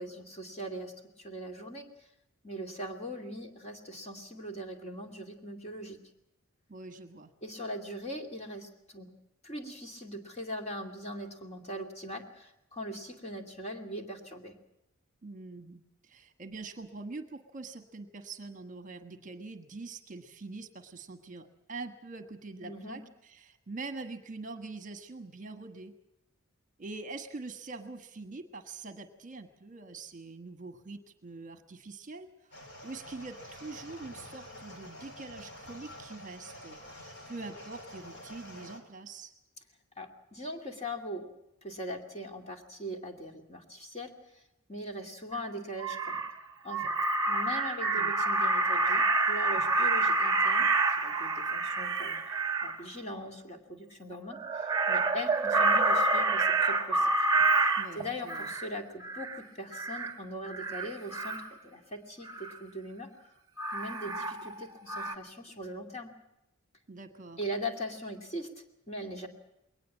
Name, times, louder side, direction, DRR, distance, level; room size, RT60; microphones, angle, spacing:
voice 1, 0.0-2.1 2.4-6.0 7.4-9.1 9.4-14.6 22.6-23.0 40.0-41.3 41.6-44.4 44.7-46.2 46.6-46.9 47.3-50.7 51.0-52.3 52.6-57.3 57.5-63.3 63.7-66.1 67.4-69.3, equal, 30° left, 3 dB, 2.6 m, -41 dB
voice 2, 6.7-7.3 15.2-25.9 26.8-39.3 48.0-48.1 57.8-58.5 66.9-67.4, right 3 dB, 35° right, 7 dB, 1.3 m, -44 dB
sound 1, 32.5-38.8, left 1 dB, 50° left, 3.9 m, -48 dB
Crow, 45.3-45.4 45.8-46.3 46.7-52.8 54.3-58.7 59.0-59.4 59.7-60.1 60.5-61.5 62.2-62.6 63.6-64.6 64.9-65.2, right 3 dB, 15° right, 1.4 m, -28 dB
21.5 x 19.0 x 7.3 m, 0.86 s
head